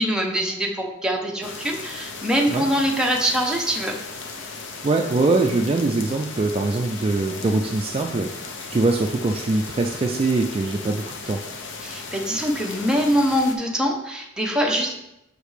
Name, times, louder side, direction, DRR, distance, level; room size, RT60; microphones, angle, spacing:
voice 1, 0.0-4.0 11.8-14.9, equal, 5° right, 0 dB, 0.7 m, -23 dB
sound 1, 1.4-13.6, left 4 dB, 65° left, 0.7 m, -36 dB
voice 2, 4.8-11.4, right 3 dB, 30° right, 3 dB, 0.3 m, -23 dB
6.4 x 5.1 x 3.3 m, 0.87 s
head